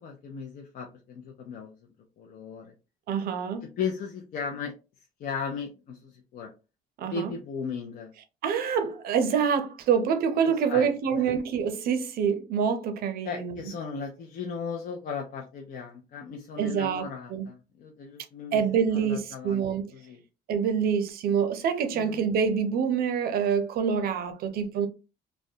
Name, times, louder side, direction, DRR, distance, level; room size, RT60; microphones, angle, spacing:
voice 1, 0.0-1.7 2.2-2.7 3.8-4.7 5.2-6.5 7.0-8.1 10.7-11.4 13.2-19.6 19.9-20.2 21.9-22.3, left 5 dB, 55° left, 0.5 m, -36 dB
voice 2, 3.1-3.7 7.0-7.3 8.4-13.7 16.6-17.0 17.3-17.5 18.5-19.9 20.5-24.9, right 7 dB, 65° right, 0.5 m, -26 dB
2.3 x 2.1 x 2.6 m
cardioid pair, 110°, 17 cm